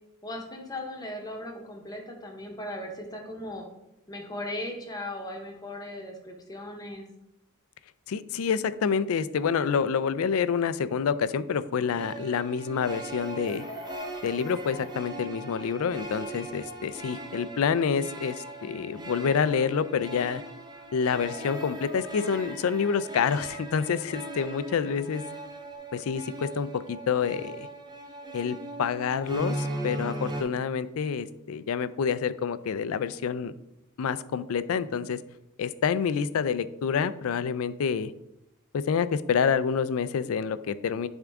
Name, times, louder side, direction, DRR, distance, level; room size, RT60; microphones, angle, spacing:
voice 1, 0.2-3.6 4.1-7.0, left 1 dB, 20° left, 2 dB, 0.9 m, -37 dB
voice 2, 8.1-13.6 14.2-20.4 20.9-25.2 25.9-27.7 28.3-33.5 34.0-35.2 35.6-38.1 38.7-41.1, left 6 dB, 75° left, 15 dB, 0.4 m, -28 dB
sound 1, 12.0-30.4, right 1 dB, 20° right, 0.6 m, -39 dB
Chicken rooster, 13.2-15.0 21.1-22.9 25.1-25.2 25.5-25.8, equal, 40° right, 2.2 m, -44 dB
10.0 x 3.6 x 3.5 m, 0.87 s
head